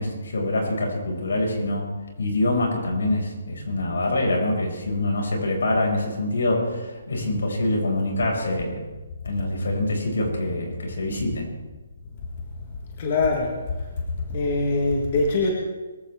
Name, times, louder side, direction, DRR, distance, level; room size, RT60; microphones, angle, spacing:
voice 1, 0.0-8.8 9.2-11.5, left 1 dB, 70° left, 0 dB, 5.9 m, -25 dB
voice 2, 13.0-13.5 13.8-13.9 14.2-15.5, left 3 dB, 30° left, 0 dB, 1.6 m, -23 dB
23.0 x 14.5 x 3.7 m, 1.2 s
hypercardioid pair, 175°, 0 cm